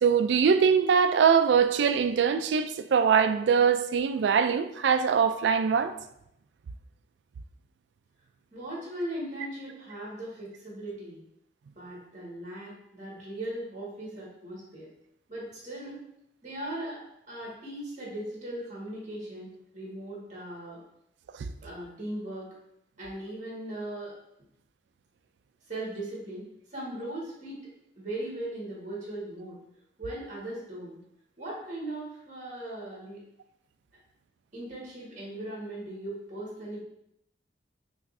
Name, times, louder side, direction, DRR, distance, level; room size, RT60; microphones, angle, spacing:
voice 1, 0.0-6.0 21.4-21.5, right 6 dB, 75° right, 0.3 m, -23 dB
voice 2, 8.5-11.2 11.8-14.9 15.3-16.0 16.4-17.0 17.3-20.8 21.6-22.5 23.0-24.1 25.7-26.5 26.7-27.6 28.0-29.6 30.0-31.0 31.4-33.2 33.9-34.0 34.5-36.8, right 1 dB, 40° right, 1.7 m, -38 dB
5.9 x 3.1 x 2.6 m
head